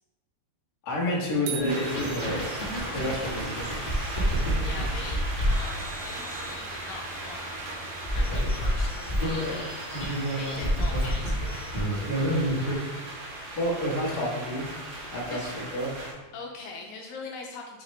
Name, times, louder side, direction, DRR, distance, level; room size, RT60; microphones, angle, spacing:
voice 1, 0.8-2.4 2.7-3.9 9.4-9.6 12.5-12.7 13.6-14.7 15.1-15.9, left 1 dB, 55° left, -5 dB, 1.0 m, -30 dB
sound 1, 1.5-3.1, right 8 dB, 75° right, 2.6 m, -39 dB
sound 2, 1.6-12.7, equal, 35° left, 0.7 m, -29 dB
sound 3, 1.7-16.1, right 1 dB, 60° right, 2.1 m, -38 dB
voice 2, 4.6-5.2 5.5-7.7 8.1-9.7 10.3-11.9 15.3-15.6 16.3-17.8, left 4 dB, 80° left, 0 dB, 2.1 m, -42 dB
6.4 x 5.7 x 3.3 m, 1.2 s
omnidirectional pair, 4.4 m